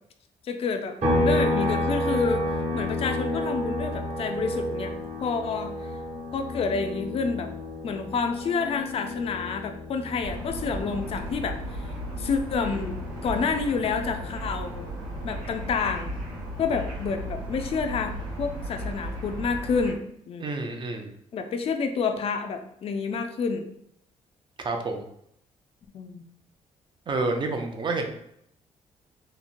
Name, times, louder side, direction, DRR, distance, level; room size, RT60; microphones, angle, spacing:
voice 1, 0.5-1.0 1.2-2.5 2.7-4.9 5.2-5.7 6.3-7.5 7.8-11.6 12.2-14.9 15.2-16.1 16.6-20.5 21.3-23.7 25.9-26.2, left 5 dB, 50° left, 6 dB, 0.4 m, -29 dB
sound 1, 1.0-14.6 14.9-17.1, left 1 dB, 55° right, 1.1 m, -31 dB
sound 2, 10.2-19.9, equal, 90° right, 1.2 m, -35 dB
voice 2, 20.4-21.1 24.6-25.0 27.1-28.1, right 3 dB, 35° right, 4 dB, 0.5 m, -29 dB
2.9 x 2.1 x 2.5 m, 0.72 s
cardioid pair, 85°, 13 cm